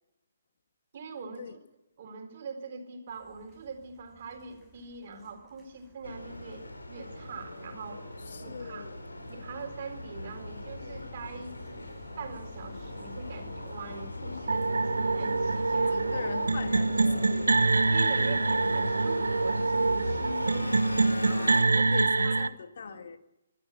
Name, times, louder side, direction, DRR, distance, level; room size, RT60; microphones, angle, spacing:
voice 1, 0.9-1.6 2.0-8.9 9.3-11.5 12.2-16.1 17.9-20.8 21.2-21.9 22.2-22.4 22.9-23.0, right 4 dB, 45° right, 5 dB, 4.1 m, -42 dB
sound 1, 3.1-20.2, left 2 dB, 10° left, 7.4 m, -59 dB
sound 2, 6.0-21.6, left 1 dB, 80° left, 4.0 m, -39 dB
voice 2, 8.3-9.0 15.9-17.7 18.2-18.4 21.2-23.2, left 5 dB, 55° left, 9 dB, 1.6 m, -40 dB
sound 3, 14.5-22.5, right 3 dB, 70° right, 0.8 m, -25 dB
24.5 x 13.0 x 9.2 m, 0.95 s
figure-of-eight pair, 135°, 0 cm